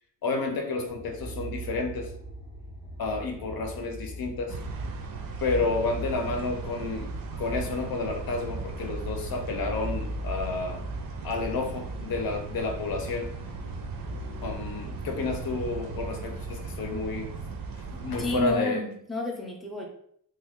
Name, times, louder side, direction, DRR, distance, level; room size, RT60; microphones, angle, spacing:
voice 1, 0.2-2.1 3.0-4.6 5.4-7.1 7.4-10.8 11.2-13.3 14.4-17.3 17.9-18.8, left 3 dB, 80° left, 4 dB, 0.7 m, -30 dB
sound 1, 0.9-17.1, equal, 45° left, 0.6 m, -40 dB
sound 2, 4.5-18.5, right 5 dB, 70° right, 0.5 m, -38 dB
voice 2, 18.2-19.8, left 2 dB, ahead, -1 dB, 0.5 m, -31 dB
3.2 x 2.2 x 3.5 m, 0.67 s
wide cardioid pair, 145°, 36 cm